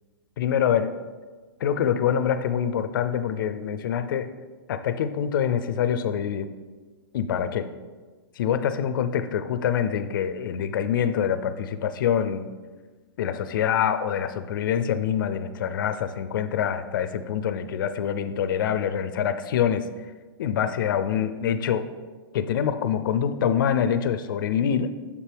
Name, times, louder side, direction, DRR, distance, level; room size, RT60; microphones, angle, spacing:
voice 1, 0.4-0.9 1.6-4.3 4.7-6.5 7.1-7.7 8.4-12.5 13.2-19.8 20.4-21.9 22.3-24.9, left 8 dB, 60° left, 11 dB, 0.4 m, -25 dB
6.9 x 4.5 x 3.4 m, 1.4 s
hypercardioid pair, 160°, 13 cm